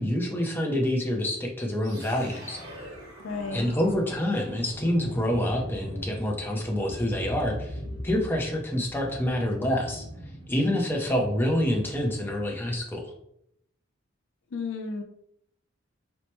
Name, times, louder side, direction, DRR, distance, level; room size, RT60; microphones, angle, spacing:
voice 1, 0.0-2.6 3.5-7.8 8.0-10.0 10.5-13.1, left 1 dB, 10° left, 0 dB, 0.5 m, -27 dB
sound 1, 1.8-12.9, equal, 55° right, 1.5 m, -41 dB
voice 2, 3.2-3.8 14.5-15.0, left 4 dB, 75° left, 5 dB, 0.5 m, -33 dB
4.3 x 2.1 x 3.0 m, 0.72 s
head